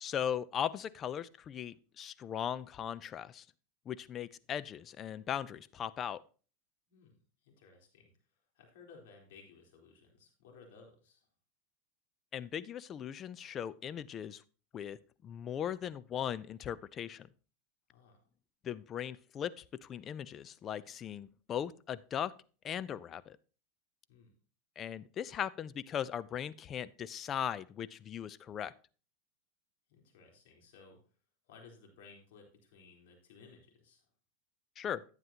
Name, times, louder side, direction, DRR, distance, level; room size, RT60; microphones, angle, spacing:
voice 1, 0.0-3.5 3.9-6.2 12.3-14.4 14.7-17.3 18.6-22.3 22.6-23.4 24.8-28.7 34.8-35.0, left 9 dB, 30° left, 18 dB, 0.5 m, -38 dB
voice 2, 6.9-8.1 8.5-11.3 17.9-18.2 24.1-24.3 29.9-31.0 31.4-34.1, left 4 dB, 75° left, 1 dB, 3.8 m, -58 dB
11.0 x 9.2 x 2.9 m, 0.37 s
supercardioid pair, 120°, 0 cm